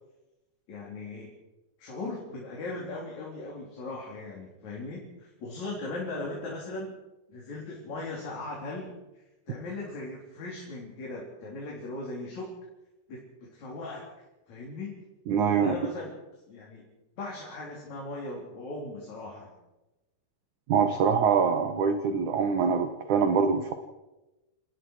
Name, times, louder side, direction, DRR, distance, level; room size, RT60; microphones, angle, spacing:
voice 1, 0.7-1.3 1.8-7.0 7.3-12.5 13.1-14.0 14.5-15.0 15.5-16.1 16.5-16.9 17.2-19.5, left 2 dB, 40° left, -3 dB, 4.8 m, -38 dB
voice 2, 15.3-15.7 20.7-23.7, right 6 dB, 70° right, 7 dB, 1.9 m, -24 dB
28.0 x 19.5 x 4.8 m, 1.0 s
omnidirectional pair, 5.1 m